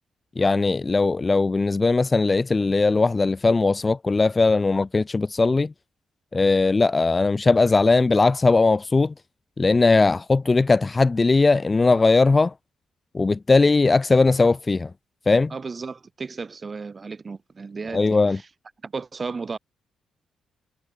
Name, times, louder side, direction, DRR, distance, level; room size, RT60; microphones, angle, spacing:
voice 1, 0.4-5.7 6.3-9.1 9.6-12.5 13.1-14.9 15.3-15.5 17.9-18.4, left 3 dB, 25° left, 0.8 m, -19 dB
voice 2, 15.5-18.5 18.8-19.6, right 4 dB, 35° right, 5.0 m, -34 dB
cardioid pair, 90°, 0 cm